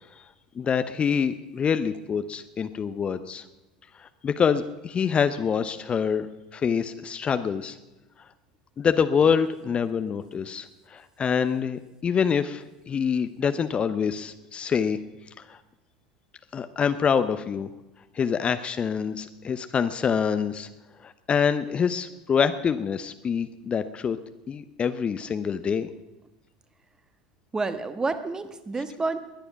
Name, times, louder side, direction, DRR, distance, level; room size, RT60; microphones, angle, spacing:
voice 1, 0.6-3.4 4.0-6.3 6.5-7.8 8.8-15.0 15.4-15.6 16.5-17.7 18.1-20.7 21.0-24.2 24.5-25.9, left 7 dB, 25° left, 11 dB, 0.7 m, -26 dB
voice 2, 27.5-29.2, right 3 dB, 15° right, 10 dB, 1.3 m, -29 dB
20.5 x 10.0 x 5.9 m, 1.0 s
figure-of-eight pair, 75°, 4 cm